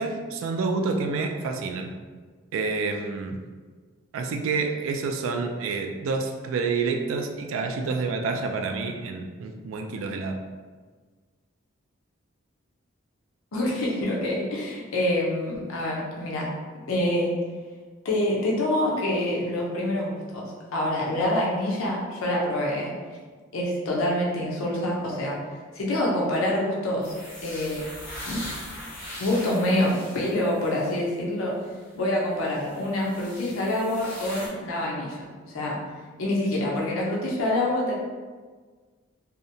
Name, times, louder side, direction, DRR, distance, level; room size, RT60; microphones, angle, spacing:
voice 1, 0.0-1.9 2.5-3.4 4.1-10.4, right 4 dB, 75° right, 4 dB, 0.3 m, -28 dB
voice 2, 13.5-16.5 16.9-17.3 18.0-22.9 23.5-25.4 25.7-27.1 27.4-27.8 28.3-28.5 29.2-31.5 31.9-35.8 36.2-37.9, left 1 dB, 85° left, -3 dB, 0.5 m, -26 dB
sound 1, 27.0-31.0 31.6-31.7 32.4-34.5, equal, 55° left, 1.3 m, -40 dB
2.7 x 2.1 x 2.6 m, 1.5 s
head